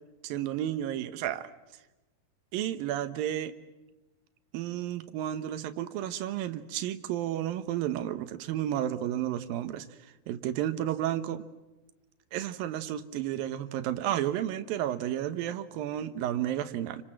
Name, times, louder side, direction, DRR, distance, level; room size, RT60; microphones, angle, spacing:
voice 1, 0.2-1.5 2.5-3.5 4.5-9.9 10.3-11.4 12.3-17.0, right 11 dB, 75° right, 11 dB, 2.8 m, -32 dB
30.0 x 25.5 x 7.6 m, 1.1 s
omnidirectional pair, 4.2 m